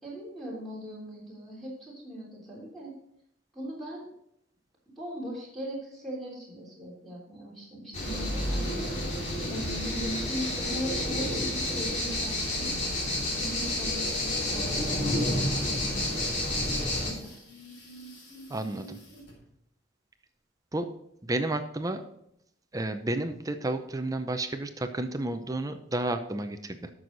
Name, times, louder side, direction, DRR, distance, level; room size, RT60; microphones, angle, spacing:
voice 1, 0.0-3.0 3.5-4.1 5.0-8.7 9.5-12.7 13.4-15.2 16.6-17.4, equal, ahead, -6 dB, 3.5 m, -39 dB
sound 1, 7.9-17.1, left 1 dB, 40° left, 3.1 m, -30 dB
sound 2, 11.0-19.4, equal, 80° left, 4.0 m, -49 dB
voice 2, 18.5-19.0 20.7-20.9 21.2-22.0 22.7-26.9, right 2 dB, 20° right, 8 dB, 0.6 m, -31 dB
12.5 x 6.3 x 4.0 m, 0.76 s
head